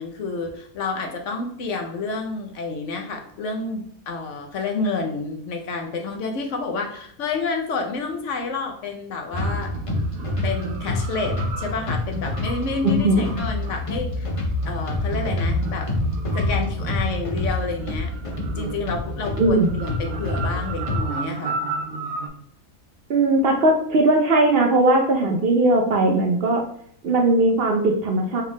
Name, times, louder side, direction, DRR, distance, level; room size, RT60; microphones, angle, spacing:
voice 1, 0.0-9.7 10.4-14.3 14.7-15.9 16.3-18.1 18.6-21.6, left 4 dB, 65° left, 4 dB, 1.0 m, -29 dB
sound 1, 9.3-21.0, left 2 dB, 40° left, 0.5 m, -27 dB
sound 2, 9.3-22.3, right 4 dB, 90° right, 1.1 m, -34 dB
voice 2, 12.8-13.2 19.4-19.8 23.1-26.6 27.0-28.4, right 2 dB, 60° right, 2 dB, 0.6 m, -19 dB
4.4 x 2.4 x 3.5 m, 0.64 s
omnidirectional pair, 1.5 m